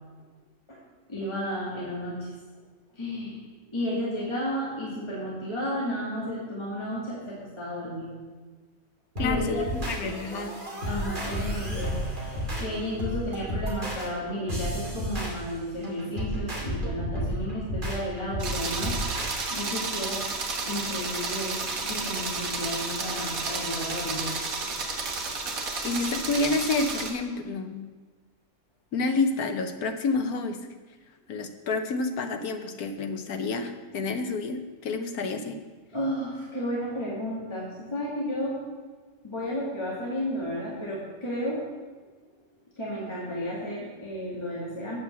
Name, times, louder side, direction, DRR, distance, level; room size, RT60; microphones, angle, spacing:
voice 1, 1.1-2.3 2.9-3.4 3.7-8.1 9.2-9.6 10.8-20.4 20.7-24.3 35.9-38.6 39.2-41.7 42.8-45.0, equal, 20° left, -6 dB, 2.2 m, -33 dB
voice 2, 9.2-10.6 25.8-27.9 28.9-30.6 31.3-35.6, left 3 dB, 90° left, 6 dB, 1.4 m, -29 dB
sound 1, 9.2-19.4, equal, 35° right, 2.4 m, -32 dB
sound 2, 18.4-27.1, right 3 dB, 70° right, 1.7 m, -32 dB
8.6 x 7.8 x 7.1 m, 1.4 s
omnidirectional pair, 1.5 m